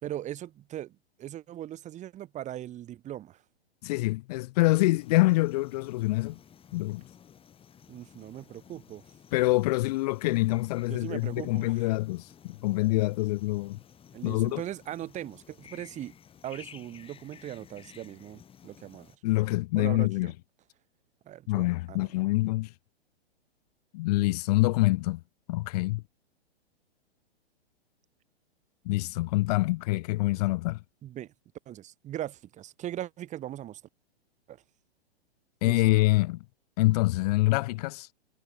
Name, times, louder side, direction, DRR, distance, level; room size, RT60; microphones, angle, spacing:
voice 1, 0.0-3.4 7.9-9.0 10.9-11.9 14.1-16.1 16.4-19.1 19.7-20.3 21.2-22.1 31.0-31.3 31.7-33.8 34.5-34.6 35.6-36.0, right 12 dB, 20° right, 3.2 m, -39 dB
voice 2, 3.8-6.4 6.7-7.0 9.3-13.8 14.2-14.6 19.2-20.3 21.5-22.7 23.9-25.2 25.5-26.0 28.8-30.8 35.6-36.4 36.8-38.1, left 20 dB, 40° left, 1.3 m, -26 dB
sound 1, 4.7-19.2, left 8 dB, 15° left, 7.7 m, -54 dB
figure-of-eight pair, 110°, 32 cm